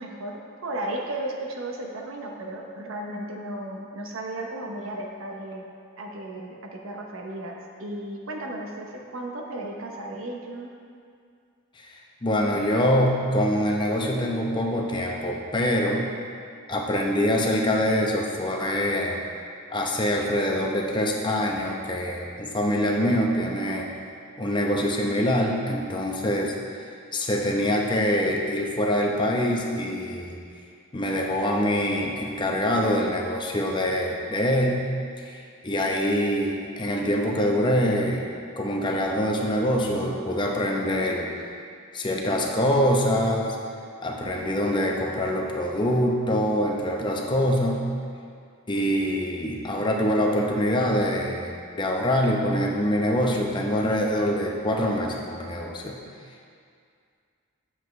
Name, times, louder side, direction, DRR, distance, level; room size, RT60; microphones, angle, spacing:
voice 1, 0.0-5.6 6.0-10.7, right 1 dB, 70° right, 1 dB, 0.8 m, -35 dB
voice 2, 12.2-16.1 16.7-19.2 19.7-23.9 24.4-26.6 27.1-30.4 30.9-34.8 35.2-35.4 35.6-38.2 38.6-41.3 41.9-43.6 44.0-47.9 48.7-56.0, equal, 20° left, 0 dB, 0.8 m, -24 dB
7.9 x 7.1 x 3.2 m, 2.3 s
head